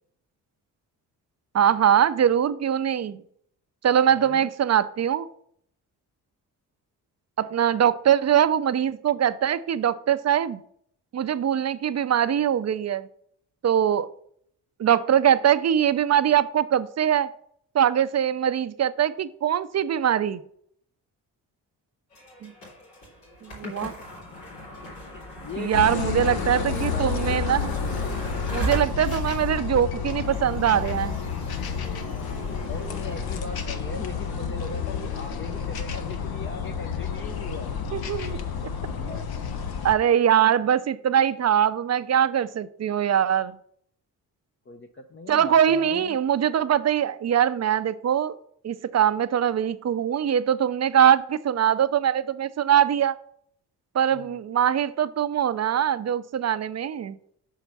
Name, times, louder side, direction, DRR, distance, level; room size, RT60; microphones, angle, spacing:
voice 1, 1.5-3.2 3.8-5.3 7.4-10.6 11.1-13.1 13.6-14.1 14.8-17.3 17.7-20.4 22.4-22.5 23.4-23.9 25.6-27.7 28.5-31.2 37.9-38.4 39.8-43.6 45.3-48.4 48.6-53.2 53.9-57.2, right 9 dB, 40° right, 14 dB, 0.5 m, -22 dB
voice 2, 4.2-4.5 23.6-23.9 25.0-27.1 32.6-37.7 44.7-46.2 54.1-54.4, left 4 dB, 30° left, 5 dB, 0.6 m, -38 dB
sound 1, 22.1-39.2, equal, 80° left, 2.8 m, -39 dB
sound 2, 25.7-40.0, left 6 dB, 60° left, 0.8 m, -30 dB
5.7 x 4.6 x 5.5 m, 0.66 s
supercardioid pair, 50°, 42 cm